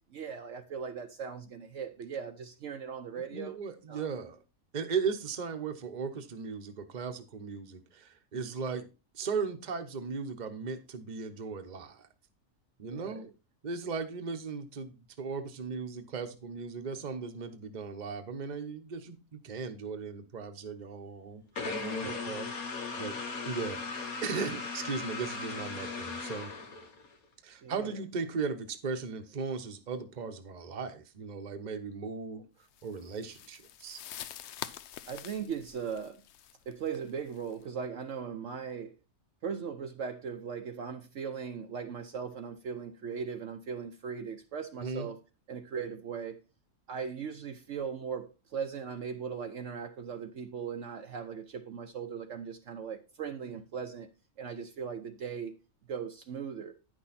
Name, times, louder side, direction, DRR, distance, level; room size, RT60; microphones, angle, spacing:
voice 1, 0.1-3.6 3.9-4.1 8.3-8.6 12.8-13.3 21.9-22.3 27.6-28.0 35.1-36.2 36.7-39.0 39.4-45.2 45.5-46.4 46.9-54.1 54.4-55.5 55.9-56.7, right 6 dB, 65° right, 1.0 m, -39 dB
voice 2, 3.2-4.4 4.7-8.9 9.1-12.1 12.8-13.3 13.6-22.5 23.0-23.2 23.4-26.5 27.4-32.5 32.8-34.0 44.8-45.1, right 5 dB, 35° right, 1.0 m, -37 dB
sound 1, 21.6-27.1, left 4 dB, 85° left, 1.8 m, -37 dB
sound 2, 32.7-37.6, left 11 dB, 65° left, 0.8 m, -46 dB
9.8 x 6.2 x 4.2 m
omnidirectional pair, 1.5 m